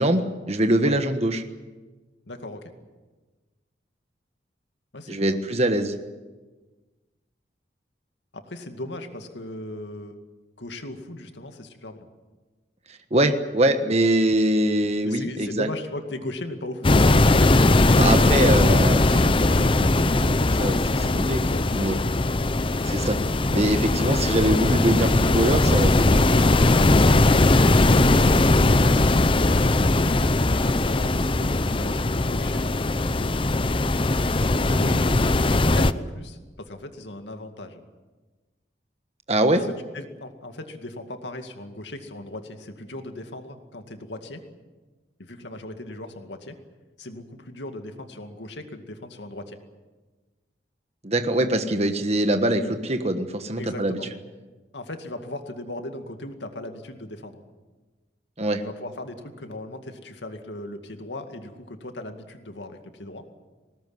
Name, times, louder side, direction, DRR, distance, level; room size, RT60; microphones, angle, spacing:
voice 1, 0.0-1.4 5.1-5.9 12.9-15.7 18.0-21.4 21.7-21.9 22.8-23.2 23.5-26.4 39.3-39.6 51.0-54.0 58.4-58.6, right 1 dB, 35° right, 7 dB, 1.3 m, -23 dB
voice 2, 2.3-2.7 4.9-5.4 8.3-10.2 10.6-12.1 15.0-17.6 21.1-22.0 27.4-33.1 34.5-37.8 39.6-44.4 45.2-46.6 47.0-49.6 53.6-54.1 54.7-57.4 58.6-63.3, left 1 dB, 90° left, 6 dB, 2.3 m, -38 dB
sound 1, 16.8-35.9, left 2 dB, 30° left, 0.7 m, -19 dB
21.0 x 18.5 x 9.5 m, 1.3 s
head